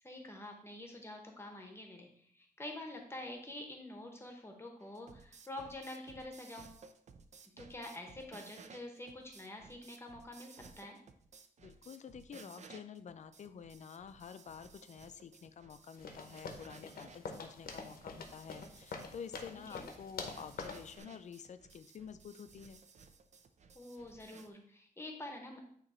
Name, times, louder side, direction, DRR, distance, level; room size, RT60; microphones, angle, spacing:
voice 1, 0.0-6.7 7.6-11.0 19.7-19.9 23.7-25.6, left 1 dB, 15° left, 2 dB, 0.9 m, -47 dB
sound 1, 4.8-24.5, right 5 dB, 50° right, 0.5 m, -58 dB
voice 2, 11.6-22.8, left 7 dB, 50° left, 11 dB, 0.4 m, -49 dB
sound 2, 16.0-20.9, left 4 dB, 90° left, 0.9 m, -45 dB
8.9 x 3.0 x 4.2 m, 0.63 s
wide cardioid pair, 160°, 15 cm